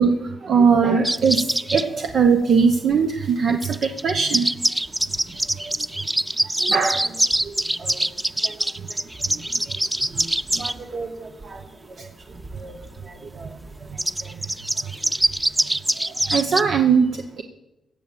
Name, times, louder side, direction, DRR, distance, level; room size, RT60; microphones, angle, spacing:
voice 1, 0.0-4.5 5.6-5.9 6.7-7.0 9.3-9.6 16.0-17.4, right 5 dB, 60° right, 5 dB, 0.9 m, -20 dB
sound 1, 1.0-1.9 3.6-10.7 14.0-16.6, right 1 dB, 10° right, 0.4 m, -23 dB
voice 2, 10.5-11.6 12.5-12.7 13.1-13.5 14.2-14.3, right 3 dB, 40° right, 4 dB, 2.0 m, -36 dB
17.0 x 7.1 x 7.6 m, 0.95 s
cardioid pair, 115°, 0 cm